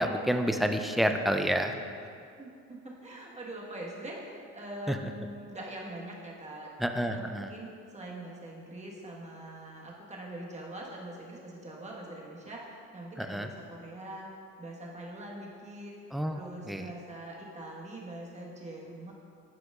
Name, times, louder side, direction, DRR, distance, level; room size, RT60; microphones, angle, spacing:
voice 1, 0.0-1.7 4.9-5.0 6.8-7.5 13.2-13.5 16.1-16.4 16.7-16.8, equal, ahead, 5 dB, 0.3 m, -28 dB
voice 2, 2.4-6.7 6.9-14.3 14.6-15.9 16.3-19.1, right 1 dB, 20° right, -3 dB, 1.3 m, -43 dB
11.5 x 5.1 x 2.4 m, 2.4 s
cardioid pair, 95°, 32 cm